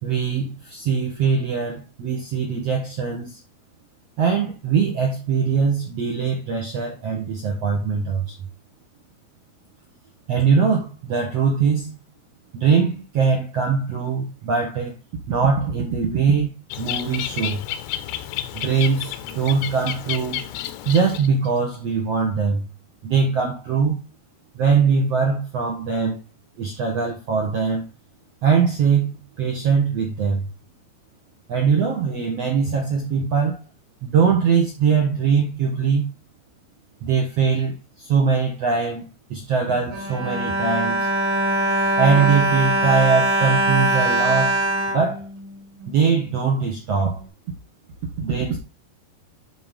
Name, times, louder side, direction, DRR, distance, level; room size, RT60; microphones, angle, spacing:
voice 1, 0.0-3.4 4.2-8.3 10.3-11.9 12.5-14.9 15.3-16.5 16.8-17.6 18.5-20.5 20.8-22.7 23.0-24.0 24.5-26.2 26.6-27.8 28.4-30.5 31.5-33.6 34.0-36.1 37.0-39.0 39.3-41.1 42.0-44.6 44.9-45.3 45.9-47.2 48.2-48.6, right 5 dB, 75° right, 1.4 m, -21 dB
Bird, 16.7-21.5, left 12 dB, 80° left, 2.7 m, -31 dB
Bowed string instrument, 39.7-45.9 46.6-46.7 47.0-47.1, right 1 dB, 50° right, 2.0 m, -22 dB
10.0 x 4.0 x 3.7 m
omnidirectional pair, 5.1 m